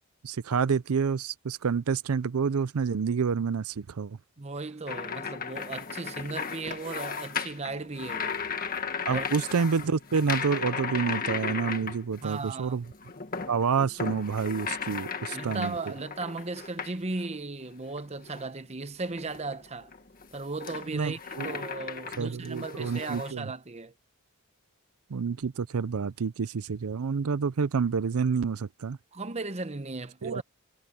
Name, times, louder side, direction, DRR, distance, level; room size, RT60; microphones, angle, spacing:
voice 1, 0.2-4.2 9.1-12.8 13.5-15.7 20.9-21.5 22.2-23.5 25.1-29.0 30.2-30.4, right 5 dB, 80° right, 0.5 m, -28 dB
voice 2, 4.4-8.4 9.1-9.3 12.2-12.8 15.3-19.9 20.3-21.2 21.4-23.9 29.1-30.4, right 3 dB, 30° right, 0.9 m, -36 dB
sound 1, 4.9-12.5 12.8-17.3 17.8-18.5 19.0-23.3, left 6 dB, 40° left, 1.7 m, -36 dB
head